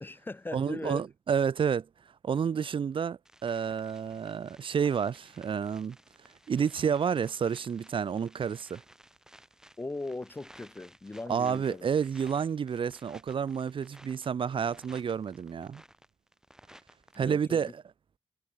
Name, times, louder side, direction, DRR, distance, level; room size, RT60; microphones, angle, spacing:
voice 1, 0.0-1.1 9.8-11.9 17.2-17.7, left 2 dB, 20° left, 0.5 m, -39 dB
voice 2, 0.5-1.9 2.2-6.0 6.5-8.8 11.3-15.8 17.2-17.7, right 7 dB, 55° right, 0.4 m, -30 dB
sound 1, 3.3-17.2, right 1 dB, 5° right, 1.6 m, -57 dB
wide cardioid pair, 120°, 10 cm